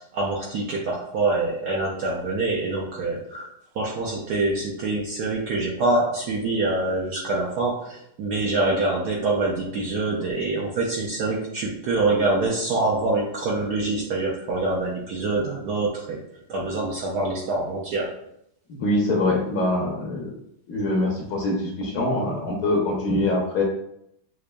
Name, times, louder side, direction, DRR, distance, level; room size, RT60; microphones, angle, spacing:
voice 1, 0.0-3.5 3.8-16.2 16.5-18.1, right 2 dB, 70° right, -2 dB, 0.9 m, -25 dB
voice 2, 18.7-20.4 20.7-23.6, left 2 dB, 65° left, -2 dB, 0.9 m, -24 dB
6.3 x 2.5 x 2.2 m, 0.75 s
omnidirectional pair, 2.3 m